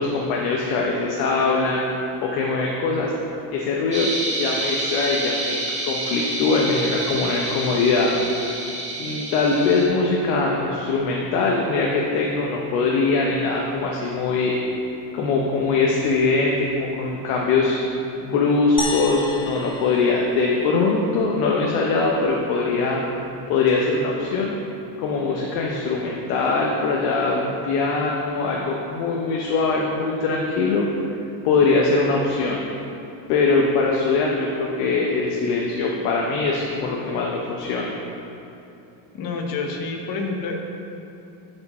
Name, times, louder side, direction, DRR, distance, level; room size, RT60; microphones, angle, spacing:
voice 1, 0.0-1.8 2.2-3.1 3.5-4.1 4.4-5.6 5.8-8.5 9.0-14.5 15.1-17.8 18.2-23.0 23.5-24.5 25.0-30.9 31.4-32.6 33.3-38.0, left 3 dB, 85° left, -2 dB, 1.1 m, -22 dB
sound 1, 3.9-9.8, right 1 dB, 15° right, 1.9 m, -28 dB
sound 2, 18.8-21.2, left 3 dB, 10° left, 0.4 m, -32 dB
voice 2, 39.1-40.5, left 4 dB, 45° left, 1 dB, 1.2 m, -28 dB
11.0 x 5.0 x 4.3 m, 2.9 s
cardioid pair, 140°, 48 cm